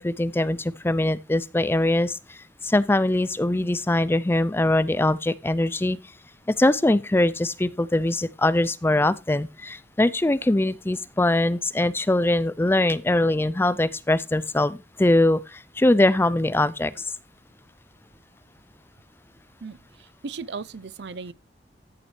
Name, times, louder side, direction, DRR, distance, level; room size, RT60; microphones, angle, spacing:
voice 1, 0.0-2.4 2.6-6.0 6.5-16.9, left 1 dB, 15° left, 0.4 m, -22 dB
voice 2, 19.6-21.3, right 4 dB, 75° right, 0.6 m, -37 dB
14.0 x 7.2 x 3.2 m
head